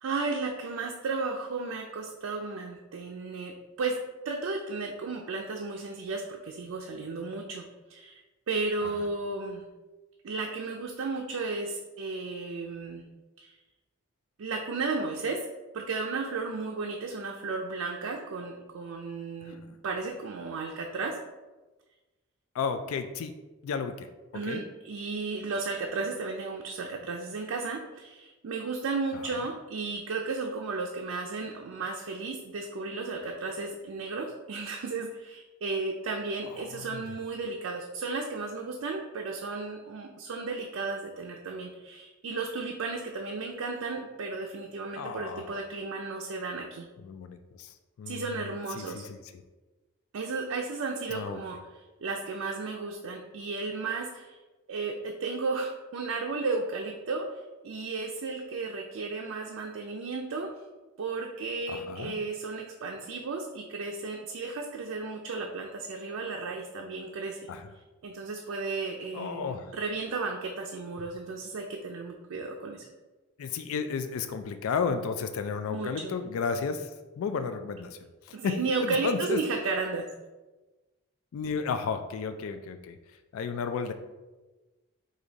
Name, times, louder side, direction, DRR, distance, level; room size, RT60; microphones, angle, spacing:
voice 1, 0.0-3.5 3.8-4.0 4.2-7.6 7.9-8.2 8.5-9.6 10.2-13.0 13.4-13.6 14.4-15.4 15.7-19.6 19.8-21.2 24.3-46.9 48.1-49.0 50.1-51.6 52.0-54.4 54.7-60.5 61.0-67.5 68.0-72.9 75.7-76.1 78.3-80.1, right 3 dB, 80° right, 1 dB, 0.4 m, -34 dB
voice 2, 22.5-23.4 23.6-24.1 24.4-24.6 29.1-29.2 36.6-37.0 45.0-45.6 47.0-48.5 48.8-49.4 51.1-51.4 61.7-62.1 67.5-67.7 69.1-69.7 73.4-76.9 77.2-78.0 78.2-79.4 81.3-83.0 83.3-83.9, left 5 dB, 80° left, 9 dB, 0.3 m, -33 dB
4.9 x 2.7 x 3.9 m, 1.2 s
head